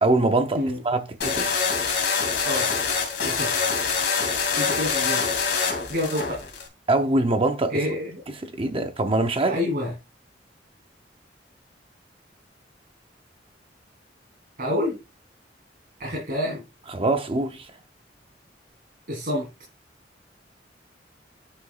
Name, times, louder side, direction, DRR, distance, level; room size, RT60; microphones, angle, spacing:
voice 1, 0.0-1.5 6.9-7.7 8.4-9.6 16.9-17.7, right 2 dB, 30° right, 0.7 m, -23 dB
sound 1, 1.2-6.7, left 5 dB, 65° left, 2.6 m, -25 dB
voice 2, 4.6-5.2 5.9-6.5 7.7-8.2 9.4-9.9 14.6-15.0 16.0-16.6 19.1-19.5, left 1 dB, 50° right, 3.2 m, -27 dB
10.0 x 6.0 x 2.4 m
head